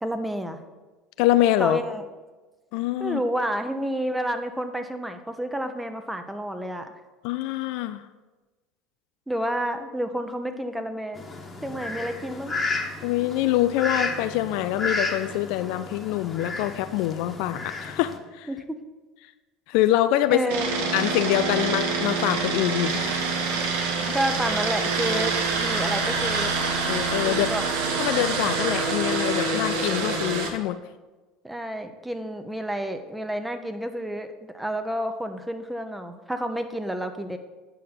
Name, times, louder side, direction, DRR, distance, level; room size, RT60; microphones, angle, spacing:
voice 1, 0.0-0.6 1.6-2.0 3.0-6.9 9.3-11.2 11.6-12.5 18.5-18.6 20.3-20.7 24.1-26.5 27.2-27.7 31.4-37.4, equal, 5° right, 7 dB, 0.9 m, -30 dB
voice 2, 1.2-1.8 2.7-3.2 7.2-8.0 13.0-18.5 19.7-20.4 20.9-23.2 23.9-24.1 26.8-27.5 28.0-30.8, left 14 dB, 60° left, 11 dB, 0.3 m, -25 dB
Fowl, 11.1-18.2, left 3 dB, 20° left, 1.3 m, -32 dB
sound 1, 20.5-30.5, right 4 dB, 65° right, 1.1 m, -26 dB
9.1 x 6.4 x 4.2 m, 1.2 s
figure-of-eight pair, 65°, 0 cm